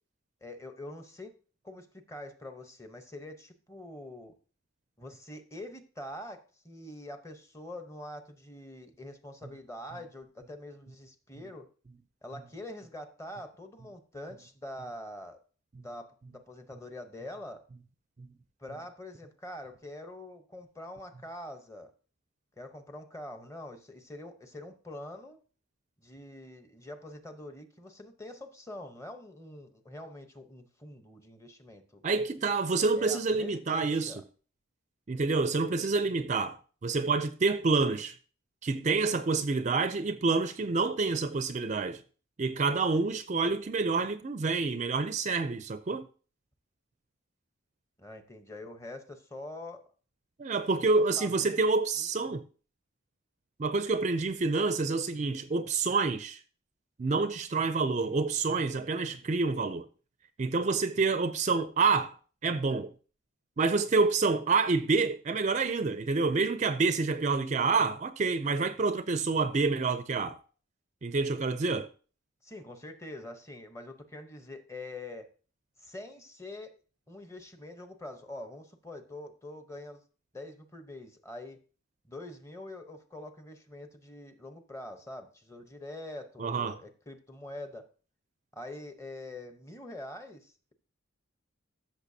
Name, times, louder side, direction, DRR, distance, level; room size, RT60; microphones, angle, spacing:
voice 1, 0.4-1.3 1.6-4.3 5.0-11.7 12.2-15.4 15.8-17.7 18.6-21.9 22.6-25.4 26.0-32.0 33.0-34.2 48.0-49.9 50.9-51.7 52.0-52.1 72.4-75.3 75.8-76.7 77.1-80.0 80.3-81.6 82.0-87.9 88.5-90.7, left 1 dB, 15° left, 0.8 m, -45 dB
voice 2, 32.0-34.1 35.1-38.1 38.6-42.0 42.4-46.1 50.4-52.4 53.6-56.4 57.0-59.9 60.4-62.1 62.4-62.9 63.6-70.4 71.0-71.9 86.4-86.8, right 4 dB, 35° right, 0.4 m, -28 dB
13.5 x 6.4 x 2.7 m
head